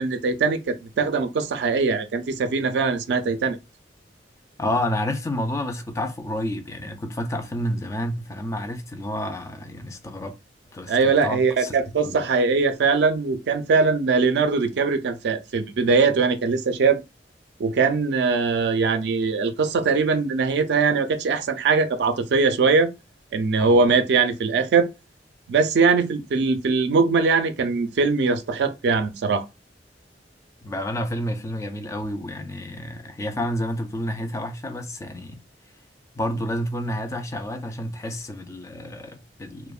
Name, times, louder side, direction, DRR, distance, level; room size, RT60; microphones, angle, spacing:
voice 1, 0.0-3.6 10.9-17.0 17.6-22.9 23.3-24.9 25.5-29.4, right 4 dB, 65° right, 0.4 m, -21 dB
voice 2, 4.6-10.3 10.7-11.8 12.0-12.2 23.6-23.9 30.6-35.4 36.2-39.7, left 1 dB, 15° left, 0.3 m, -30 dB
2.8 x 2.0 x 2.3 m
head